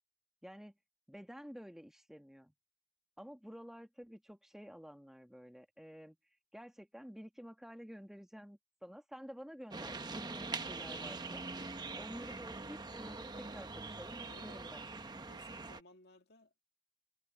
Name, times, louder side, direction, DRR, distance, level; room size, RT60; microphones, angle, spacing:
voice 1, 0.4-0.7 1.1-2.5 3.2-6.2 6.5-14.8, equal, ahead, 1.7 m, -51 dB
sound 1, 9.7-15.8, right 3 dB, 20° right, 0.9 m, -43 dB
voice 2, 14.3-14.7 15.3-16.6, left 2 dB, 55° left, 2.0 m, -60 dB
head